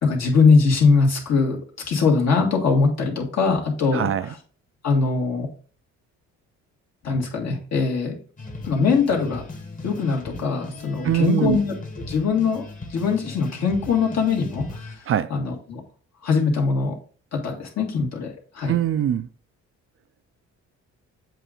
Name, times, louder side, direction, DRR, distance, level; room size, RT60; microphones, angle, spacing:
voice 1, 0.0-1.6 1.9-4.1 4.8-5.5 7.0-8.2 8.7-9.4 9.8-11.7 12.1-12.6 12.9-14.7 15.3-15.8 16.2-16.9 17.3-18.7, left 4 dB, 60° left, 2.0 m, -21 dB
voice 2, 3.9-4.3 11.0-11.6 15.1-15.3 18.7-19.3, right 10 dB, 45° right, 0.4 m, -22 dB
sound 1, 8.4-14.9, left 2 dB, 25° left, 1.4 m, -37 dB
7.5 x 2.6 x 4.9 m
cardioid pair, 90°, 30 cm